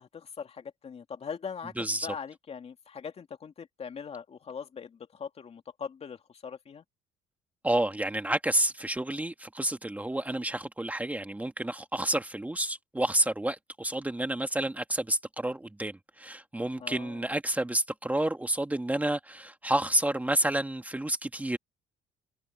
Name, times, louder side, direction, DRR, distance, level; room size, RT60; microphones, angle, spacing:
voice 1, 0.0-6.8 16.8-17.2, left 6 dB, 40° left, 2.6 m, -41 dB
voice 2, 1.8-2.1 7.6-21.6, right 1 dB, 10° right, 1.6 m, -30 dB
cardioid pair, 110°, 17 cm